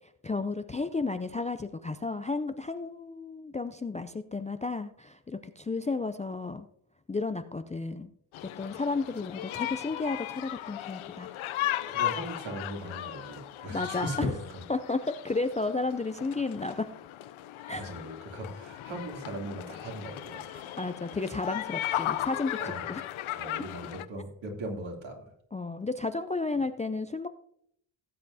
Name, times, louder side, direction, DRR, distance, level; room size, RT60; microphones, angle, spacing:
voice 1, 0.2-6.7 7.1-8.1 8.6-11.3 13.7-14.3 14.7-16.9 17.7-17.8 20.8-23.0 25.5-27.3, left 3 dB, 15° left, 10 dB, 0.3 m, -32 dB
sound 1, 8.3-24.1, left 13 dB, 75° left, 0.6 m, -36 dB
voice 2, 11.9-14.6 17.7-20.7 22.6-22.9 23.3-25.3, right 1 dB, 65° right, 0 dB, 2.8 m, -39 dB
17.0 x 7.6 x 2.7 m, 0.69 s
cardioid pair, 95°, 50 cm